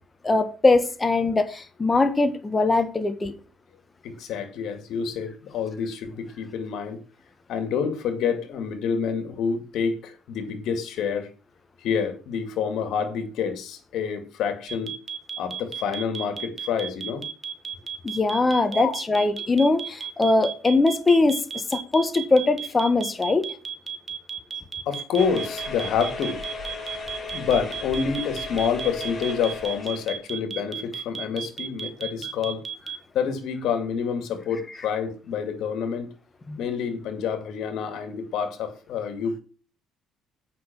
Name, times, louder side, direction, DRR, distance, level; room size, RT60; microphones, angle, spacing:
voice 1, 0.2-3.3 18.0-21.4 21.7-23.5 34.7-34.9 36.5-36.6, left 3 dB, 20° left, 1.4 m, -21 dB
voice 2, 4.0-7.0 7.5-11.3 11.8-14.9 15.4-17.3 18.7-18.9 24.9-26.4 27.3-32.6 33.1-36.1 36.6-39.4, left 6 dB, 70° left, 2.3 m, -28 dB
sound 1, 14.7-33.0, right 8 dB, 30° right, 1.4 m, -33 dB
sound 2, 25.2-30.2, left 3 dB, 40° left, 5.1 m, -36 dB
8.5 x 5.9 x 6.0 m
cardioid pair, 100°, 0 cm